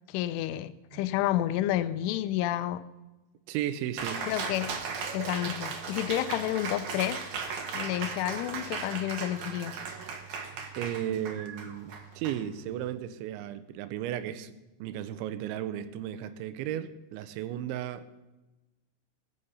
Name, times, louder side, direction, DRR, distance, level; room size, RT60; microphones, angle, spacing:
voice 1, 0.1-2.9 4.3-4.7 5.1-7.2 7.7-9.8, left 13 dB, 85° left, 3.1 m, -30 dB
voice 2, 3.5-4.3 10.8-14.5 14.8-18.1, right 11 dB, 80° right, 3.1 m, -35 dB
Cheering, 4.0-12.9, right 5 dB, 60° right, 2.1 m, -37 dB
20.0 x 7.4 x 5.5 m
omnidirectional pair, 5.5 m